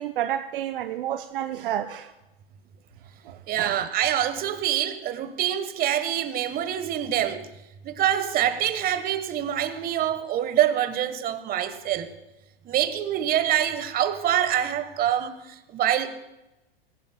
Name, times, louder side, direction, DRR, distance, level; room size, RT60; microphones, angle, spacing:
voice 1, 0.0-2.1 3.3-3.7, right 11 dB, 60° right, 0.7 m, -30 dB
voice 2, 3.5-7.5 7.8-12.1 12.6-16.1, right 11 dB, 30° right, 1.3 m, -25 dB
23.0 x 16.0 x 2.2 m
figure-of-eight pair, 95°, 30 cm